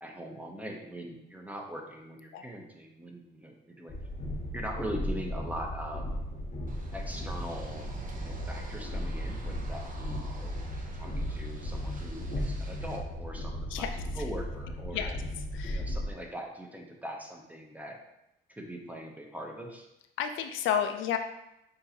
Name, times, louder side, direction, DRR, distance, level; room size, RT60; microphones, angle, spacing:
voice 1, 0.0-3.9 4.5-6.1 6.9-7.9 8.2-10.5 10.9-13.9 14.1-15.1 15.7-18.0 18.5-19.9, equal, 5° right, 1 dB, 0.8 m, -41 dB
Train, 3.9-16.1, left 1 dB, 35° left, 0.9 m, -36 dB
sound 1, 6.7-13.0, right 3 dB, 40° right, 0.8 m, -45 dB
voice 2, 13.7-14.2 14.9-15.1 15.5-15.9 20.2-21.2, left 8 dB, 80° left, 7 dB, 0.4 m, -31 dB
6.2 x 2.6 x 2.9 m, 0.86 s
cardioid pair, 90°, 20 cm